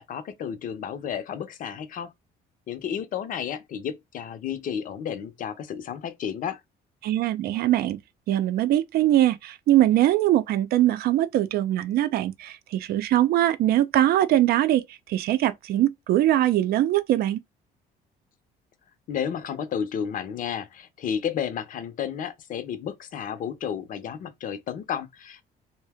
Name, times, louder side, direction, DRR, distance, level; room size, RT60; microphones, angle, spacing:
voice 1, 0.0-2.1 2.7-6.6 19.1-25.4, left 8 dB, 55° left, 0.6 m, -32 dB
voice 2, 7.0-8.0 8.3-17.4, right 13 dB, 65° right, 0.5 m, -22 dB
2.7 x 2.1 x 3.4 m
cardioid pair, 110°, 17 cm